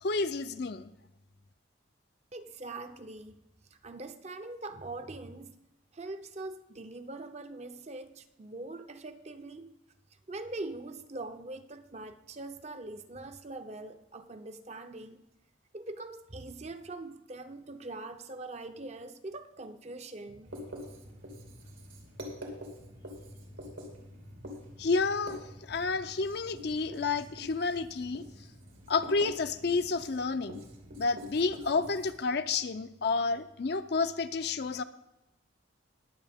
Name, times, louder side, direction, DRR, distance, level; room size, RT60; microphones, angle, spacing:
voice 1, 0.0-0.9 24.8-28.2 28.9-30.6 31.0-34.8, left 4 dB, 55° left, 0.5 m, -30 dB
voice 2, 2.3-3.4 3.7-5.5 5.9-9.7 10.3-15.2 15.7-20.5, right 2 dB, 35° right, 0.6 m, -42 dB
Writing, 20.4-32.1, left 1 dB, 90° right, 2.6 m, -46 dB
20.0 x 7.3 x 3.5 m
head